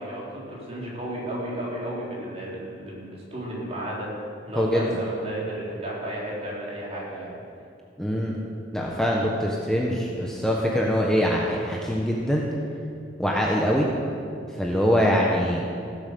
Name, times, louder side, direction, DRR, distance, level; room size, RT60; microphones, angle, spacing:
voice 1, 0.0-4.1 4.4-7.4, right 1 dB, 35° right, -5 dB, 3.8 m, -33 dB
voice 2, 4.6-4.9 8.0-8.3 8.7-12.5 13.2-13.9 14.6-15.6, equal, 5° left, -3 dB, 1.0 m, -23 dB
15.5 x 8.2 x 6.7 m, 2.5 s
head